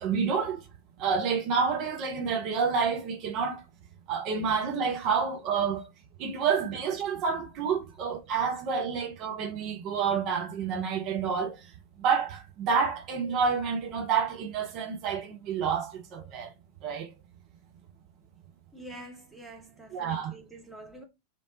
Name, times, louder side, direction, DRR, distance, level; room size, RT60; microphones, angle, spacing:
voice 1, 0.0-0.6 1.0-3.6 4.1-5.9 6.2-11.6 12.0-16.5 16.8-17.1 19.9-20.3, right 6 dB, 40° right, 0.8 m, -29 dB
voice 2, 18.7-21.0, right 1 dB, 10° right, 1.1 m, -46 dB
3.2 x 3.0 x 2.7 m
figure-of-eight pair, 90°, 0 cm